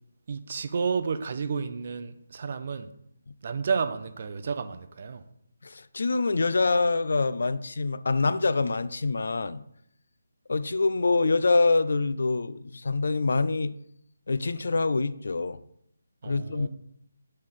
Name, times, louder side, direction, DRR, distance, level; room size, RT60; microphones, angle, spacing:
voice 1, 0.3-2.9 3.4-5.2 16.2-16.7, right 5 dB, 45° right, 0.5 m, -31 dB
voice 2, 5.6-9.6 10.5-13.7 14.3-15.6 16.2-16.7, left 3 dB, 70° left, 0.3 m, -25 dB
5.6 x 3.3 x 5.4 m
figure-of-eight pair, 155°, 0 cm